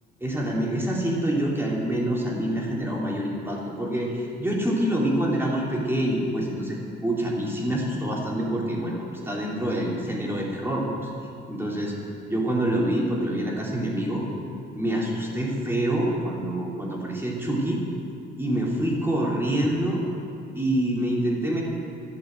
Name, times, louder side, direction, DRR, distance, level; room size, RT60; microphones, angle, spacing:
voice 1, 0.2-11.1 11.5-11.9 12.3-14.2 14.7-17.8 18.4-20.0 20.5-21.6, right 1 dB, 10° right, -4 dB, 3.1 m, -26 dB
11.5 x 7.7 x 7.7 m, 2.5 s
cardioid pair, 90°, 20 cm